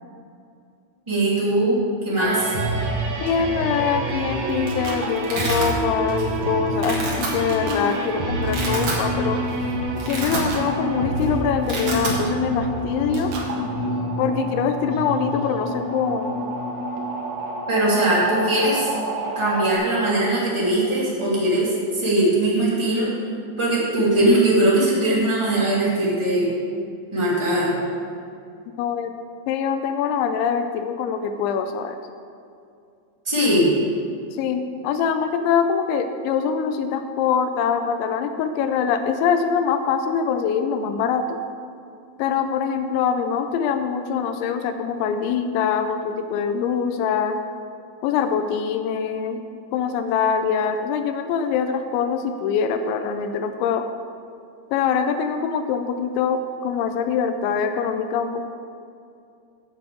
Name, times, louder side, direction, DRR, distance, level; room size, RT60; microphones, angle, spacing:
voice 1, 1.1-1.8 2.0-2.5 17.7-18.9 19.3-23.1 23.6-26.5 27.1-27.7 33.2-33.7, right 1 dB, 20° right, -8 dB, 0.8 m, -20 dB
sound 1, 2.2-19.7, right 1 dB, 75° right, 1.7 m, -27 dB
voice 2, 3.2-9.4 10.0-13.3 14.2-16.4 28.8-29.1 29.5-32.0 34.3-41.4 42.2-47.4 48.0-49.4 49.7-53.9 54.7-58.5, left 6 dB, 85° left, 8 dB, 2.7 m, -24 dB
Domestic sounds home sounds, 4.2-4.6 4.8-5.7 6.2-6.4 6.7-7.3 7.9-8.0 8.4-9.0 9.4-9.6 9.9-10.8 11.1-11.3 11.5-12.2, right 3 dB, 55° right, 1.7 m, -29 dB
8.3 x 7.7 x 7.5 m, 2.5 s
omnidirectional pair, 5.6 m